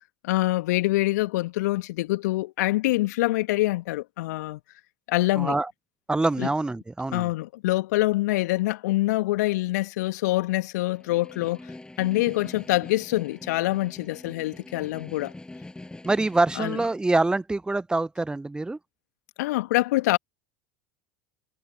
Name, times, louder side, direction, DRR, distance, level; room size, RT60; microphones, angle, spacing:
voice 1, 0.2-4.6 5.1-5.5 6.4-6.5 7.1-11.6 12.0-15.3 16.6-16.8 19.4-20.2, left 18 dB, 65° left, 2.3 m, -25 dB
voice 2, 5.4-5.7 6.1-7.3 16.0-18.8, right 2 dB, 10° right, 0.8 m, -25 dB
Snare drum, 10.9-17.1, left 2 dB, 10° left, 7.4 m, -43 dB
figure-of-eight pair, 75°, 10 cm